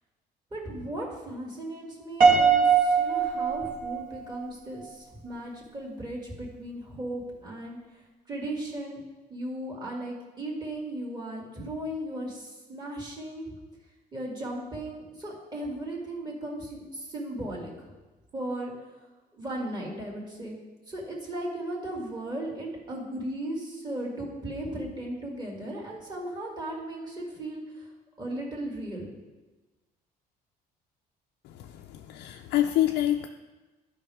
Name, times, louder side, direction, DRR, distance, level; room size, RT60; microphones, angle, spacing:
voice 1, 0.5-8.0 8.3-9.0 9.3-13.5 14.1-17.9 18.3-18.9 19.3-20.6 20.9-27.9 28.2-29.1, right 1 dB, 25° right, -2 dB, 2.4 m, -36 dB
Piano, 2.2-4.4, right 5 dB, 50° right, 1.7 m, -21 dB
voice 2, 31.4-33.3, left 13 dB, 85° left, 4 dB, 0.5 m, -27 dB
12.0 x 5.3 x 3.6 m, 1.2 s
cardioid pair, 110°, 17 cm